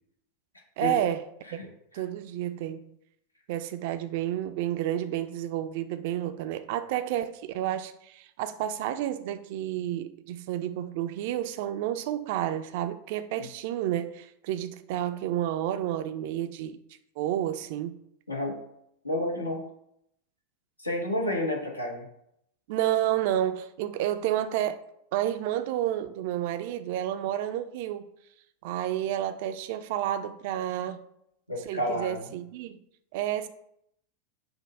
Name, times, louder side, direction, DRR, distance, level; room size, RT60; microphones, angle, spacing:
voice 1, 0.8-1.2 1.5-1.6 1.9-2.9 3.5-16.8 17.2-17.9 22.7-24.8 25.1-28.0 28.6-31.0 31.7-32.8 33.1-33.5, right 12 dB, 50° right, 0.3 m, -30 dB
voice 2, 18.3-18.6 19.0-19.6 20.8-22.1 31.5-32.2, left 1 dB, 85° left, 0.8 m, -30 dB
5.2 x 2.1 x 4.5 m
figure-of-eight pair, 85°, 0 cm